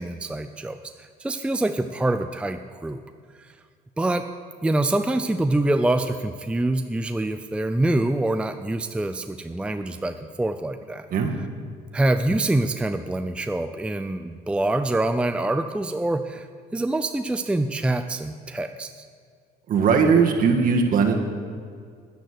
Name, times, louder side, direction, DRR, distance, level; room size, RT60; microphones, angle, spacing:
voice 1, 0.0-3.0 4.0-4.3 4.6-11.1 11.9-16.5 16.7-19.0, right 2 dB, 5° right, 8 dB, 0.5 m, -25 dB
voice 2, 19.7-21.1, right 5 dB, 55° right, 2 dB, 1.9 m, -19 dB
10.5 x 10.5 x 6.7 m, 2.2 s
cardioid pair, 110°, 17 cm